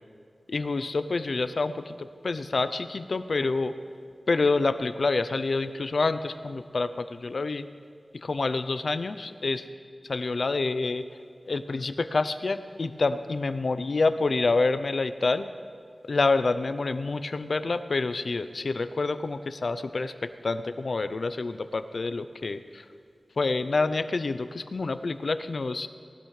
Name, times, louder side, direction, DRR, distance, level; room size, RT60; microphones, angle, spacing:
voice 1, 0.5-3.7 4.3-7.7 8.2-9.6 10.1-11.0 11.5-15.5 16.0-22.8 23.4-25.9, left 3 dB, 70° left, 12 dB, 0.5 m, -27 dB
18.5 x 12.5 x 3.3 m, 2.3 s
wide cardioid pair, 70°, 0 cm